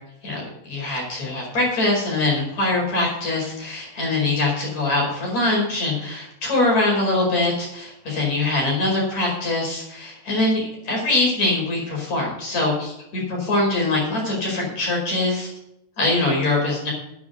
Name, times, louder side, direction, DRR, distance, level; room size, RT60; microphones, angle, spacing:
voice 1, 0.2-15.5 16.0-16.9, left 2 dB, 55° left, -2 dB, 6.3 m, -23 dB
10.5 x 9.5 x 6.7 m, 0.82 s
omnidirectional pair, 3.7 m